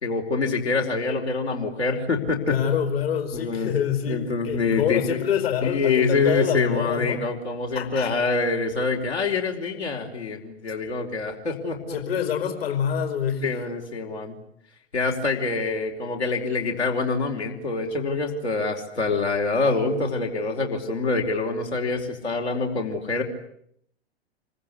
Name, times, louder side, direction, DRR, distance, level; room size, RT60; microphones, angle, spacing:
voice 1, 0.0-2.6 3.3-3.7 4.1-5.2 5.6-12.2 13.4-14.4 14.9-23.2, left 3 dB, 75° left, 1 dB, 4.9 m, -25 dB
voice 2, 2.5-7.2 7.7-8.1 11.9-13.4, left 8 dB, 60° left, 6 dB, 4.9 m, -26 dB
27.5 x 24.5 x 8.4 m, 0.70 s
figure-of-eight pair, 105°, 33 cm